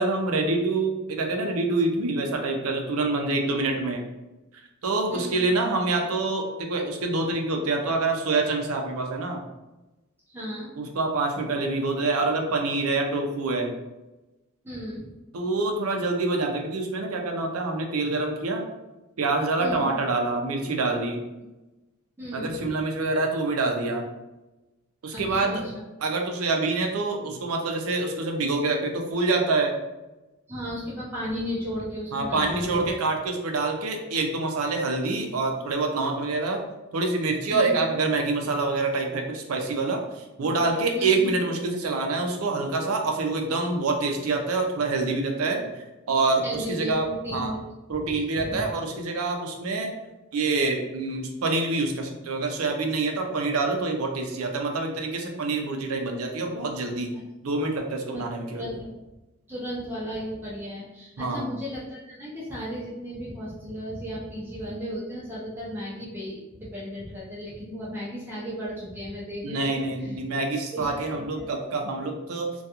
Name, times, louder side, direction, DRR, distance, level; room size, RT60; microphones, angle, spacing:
voice 1, 0.0-4.1 4.8-9.5 10.8-13.7 15.3-18.6 19.2-21.2 22.3-24.1 25.0-25.6 26.0-29.8 32.1-36.6 36.9-45.6 46.1-47.0 47.3-47.5 47.9-49.9 50.3-57.1 57.4-58.7 61.2-61.4 69.4-72.5, right 3 dB, 75° right, 2 dB, 0.5 m, -26 dB
voice 2, 10.3-10.7 14.6-15.1 19.6-19.8 22.2-22.7 25.1-25.8 30.5-32.9 37.5-37.7 40.4-40.5 40.9-41.2 46.4-47.6 48.0-48.7 58.1-58.2 58.5-59.0 59.5-70.2 70.7-71.5, equal, 10° right, -8 dB, 0.5 m, -35 dB
2.3 x 2.3 x 2.8 m, 1.0 s
head